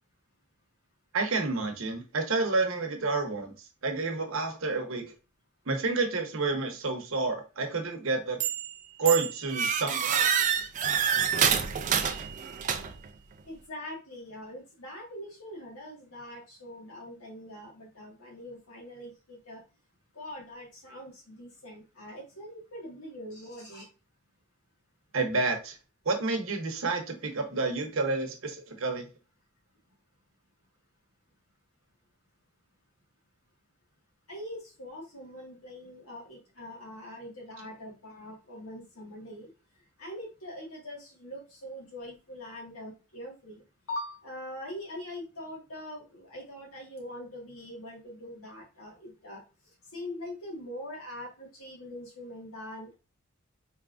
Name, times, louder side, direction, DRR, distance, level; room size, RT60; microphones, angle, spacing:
voice 1, 1.1-3.5 3.8-5.1 5.7-8.4 9.0-10.3 25.1-25.7 26.1-29.0, right 3 dB, 65° right, 4 dB, 0.9 m, -29 dB
sound 1, 8.4-8.7 9.1-13.1, right 7 dB, 35° right, 0.4 m, -27 dB
voice 2, 13.5-19.6 20.1-23.9 28.9-29.0 34.3-39.5 40.0-49.4 49.9-52.9, left 1 dB, 85° left, -1 dB, 1.7 m, -43 dB
4.2 x 3.4 x 2.4 m, 0.31 s
head